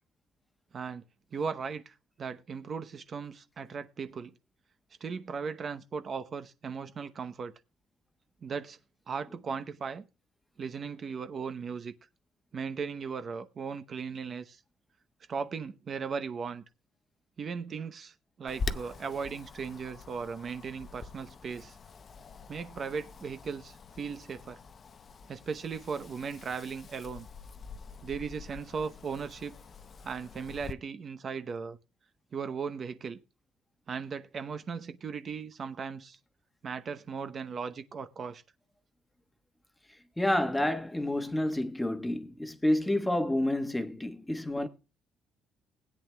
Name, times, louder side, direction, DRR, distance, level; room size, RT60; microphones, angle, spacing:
voice 1, 1.3-4.3 5.0-7.5 8.4-8.8 9.1-10.0 10.6-11.9 12.5-14.6 15.3-16.6 17.4-21.8 22.5-24.6 25.3-27.3 28.0-29.5 30.0-31.8 32.3-33.2 33.9-36.2 36.6-38.4, right 5 dB, 40° right, 0.8 m, -37 dB
Wind, 18.5-30.7, left 4 dB, 40° left, 0.7 m, -44 dB
voice 2, 40.2-44.7, left 1 dB, 5° left, 1.2 m, -29 dB
20.0 x 8.9 x 2.3 m
cardioid pair, 120°, 0 cm